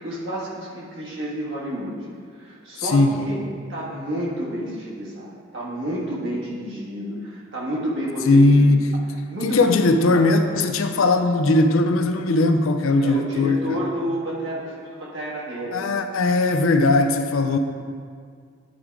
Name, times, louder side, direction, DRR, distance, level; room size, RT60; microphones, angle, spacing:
voice 1, 0.0-2.0 2.3-3.4 3.7-8.5 9.3-9.8 13.0-15.9, equal, 60° right, -6 dB, 1.7 m, -30 dB
voice 2, 2.8-3.2 8.3-8.9 9.4-13.7 15.7-17.6, left 2 dB, 70° left, 7 dB, 0.5 m, -18 dB
10.5 x 3.6 x 4.7 m, 2.1 s
head